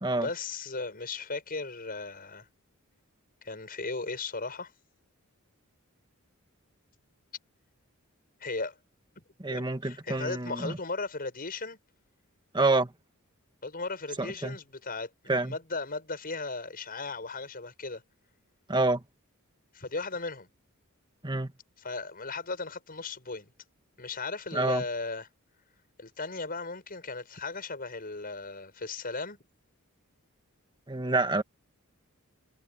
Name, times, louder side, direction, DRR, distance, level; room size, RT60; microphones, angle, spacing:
voice 1, 0.2-2.5 3.4-4.7 8.4-8.8 9.5-11.8 13.6-18.0 19.7-20.5 21.8-23.5 24.0-25.3 26.0-29.4, left 3 dB, 40° left, 6.8 m, -36 dB
voice 2, 9.4-10.8 12.5-12.9 14.2-14.6 15.3-15.5 18.7-19.0 21.2-21.5 24.5-24.8 30.9-31.4, right 2 dB, 20° right, 1.8 m, -27 dB
head